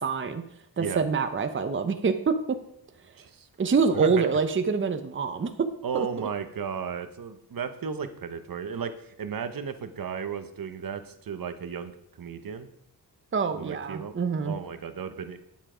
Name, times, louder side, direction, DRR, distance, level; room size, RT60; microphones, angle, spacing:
voice 1, 0.0-0.4 0.8-2.6 3.6-5.5 5.9-6.3 13.3-14.5, right 5 dB, 30° right, 8 dB, 0.8 m, -26 dB
voice 2, 3.2-3.5 3.9-4.3 5.8-12.7 13.5-14.1 14.4-15.4, right 6 dB, 55° right, 9 dB, 1.0 m, -34 dB
10.0 x 7.2 x 5.0 m, 0.73 s
cardioid pair, 90°, 41 cm